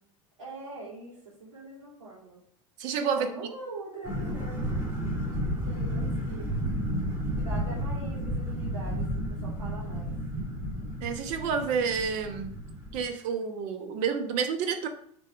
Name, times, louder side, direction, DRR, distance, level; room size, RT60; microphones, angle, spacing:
voice 1, 0.4-2.4 3.1-4.8 5.1-5.3 5.6-6.5 7.4-10.1, right 2 dB, 70° right, -8 dB, 2.6 m, -43 dB
voice 2, 2.8-3.3 11.0-12.5 12.9-14.9, right 6 dB, 50° right, 7 dB, 1.0 m, -29 dB
sound 1, 4.0-13.0, equal, 15° right, 2.4 m, -32 dB
6.5 x 3.9 x 5.0 m, 0.66 s
figure-of-eight pair, 80°, 17 cm